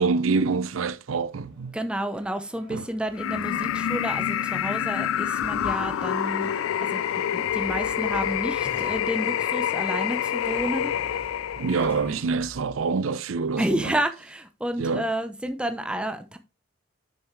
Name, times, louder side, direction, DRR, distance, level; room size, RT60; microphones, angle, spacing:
voice 1, 0.0-1.7 2.7-2.9 11.6-13.9 14.8-15.0, right 4 dB, 90° right, 0.5 m, -26 dB
Cheering / Applause, 1.1-8.8, right 1 dB, 45° right, 2.9 m, -49 dB
voice 2, 1.7-6.5 6.8-7.0 7.3-11.2 13.6-16.4, right 1 dB, 5° right, 0.6 m, -30 dB
sound 1, 3.2-12.2, left 10 dB, 90° left, 0.3 m, -27 dB
sound 2, 7.4-9.3 10.4-13.3, equal, 10° left, 1.2 m, -46 dB
6.9 x 6.6 x 3.1 m
head